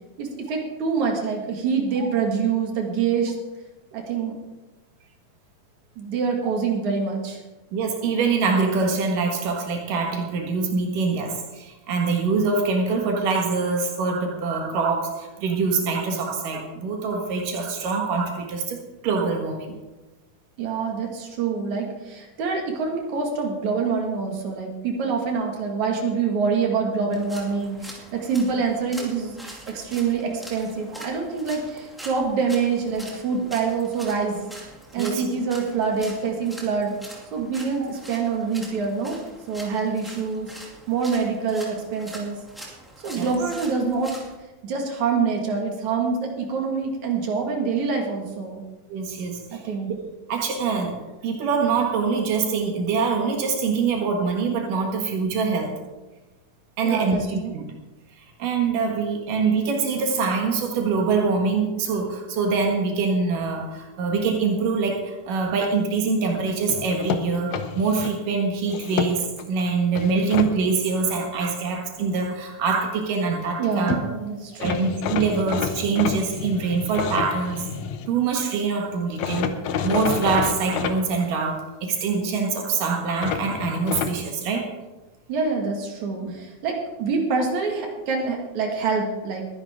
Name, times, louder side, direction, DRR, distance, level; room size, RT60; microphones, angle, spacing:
voice 1, 0.2-3.3 3.9-4.4 6.0-7.4 20.6-29.4 29.7-34.4 34.9-36.9 37.3-39.2 39.5-40.5 40.9-42.4 43.0-44.2 44.6-48.6 49.5-49.9 56.8-57.5 73.6-74.8 85.3-89.5, right 5 dB, 65° right, 1 dB, 3.3 m, -26 dB
voice 2, 7.7-19.7 35.0-35.3 37.8-37.9 43.1-43.4 48.9-49.6 49.9-50.0 50.3-50.9 51.2-55.7 56.8-57.6 58.4-74.0 74.6-77.6 78.1-79.5 79.8-84.7 86.2-86.3, right 4 dB, 85° right, 3 dB, 3.3 m, -24 dB
sound 1, 27.1-44.4, right 1 dB, ahead, 1.8 m, -43 dB
sound 2, 66.7-68.1 68.7-69.5 69.9-70.5 73.6-73.7 73.9-74.0 74.6-78.1 79.2-81.0 83.2-84.2, left 8 dB, 70° left, 2.0 m, -29 dB
21.0 x 10.5 x 3.7 m, 1.1 s
omnidirectional pair, 3.7 m